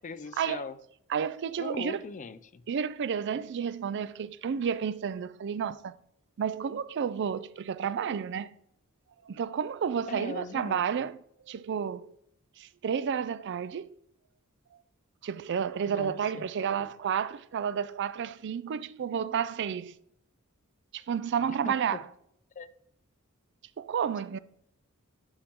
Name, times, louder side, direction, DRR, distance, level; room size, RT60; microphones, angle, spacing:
voice 1, 0.0-0.8 1.6-2.6 10.1-11.1 15.9-16.9 21.5-22.0 22.6-22.7, left 4 dB, 35° left, 0.4 m, -41 dB
voice 2, 1.1-2.0 2.7-6.0 6.4-8.5 9.2-11.2 11.5-12.1 12.6-13.9 15.2-19.9 20.9-22.0 23.8-24.4, right 7 dB, 55° right, 0.4 m, -31 dB
11.5 x 4.4 x 3.6 m
head